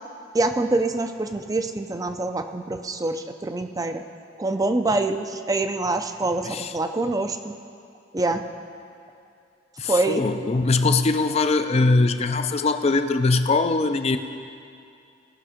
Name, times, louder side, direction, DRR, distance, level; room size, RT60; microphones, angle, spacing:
voice 1, 0.3-4.0 4.4-7.5 8.1-8.4 9.8-10.2, right 2 dB, 20° right, 7 dB, 0.5 m, -25 dB
voice 2, 9.8-14.2, left 3 dB, 35° left, 9 dB, 0.5 m, -21 dB
18.0 x 6.0 x 5.0 m, 2.5 s
head